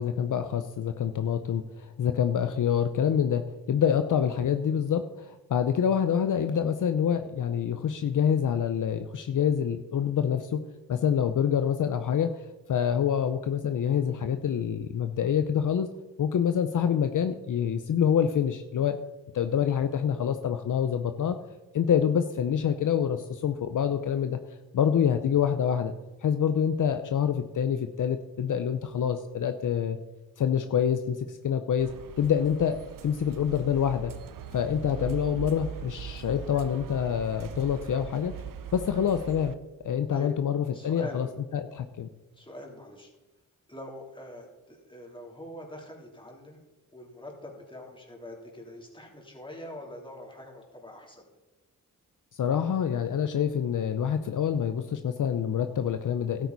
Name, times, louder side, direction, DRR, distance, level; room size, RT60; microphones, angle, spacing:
voice 1, 0.0-3.4 3.7-10.6 10.9-12.3 12.7-15.9 16.2-19.0 19.3-21.4 21.7-24.4 24.7-25.9 26.2-30.0 30.4-31.9 32.2-32.8 33.0-34.1 34.5-38.3 38.7-39.5 39.8-41.3 41.5-42.1 52.3-56.5, left 8 dB, 65° left, 9 dB, 0.7 m, -26 dB
sound 1, 31.8-39.5, right 9 dB, 70° right, 0.8 m, -41 dB
voice 2, 40.7-41.3 42.3-43.1 43.7-46.6 46.9-51.3, left 1 dB, 15° left, -1 dB, 3.4 m, -44 dB
12.5 x 9.2 x 4.1 m, 1.1 s
cardioid pair, 70°, 34 cm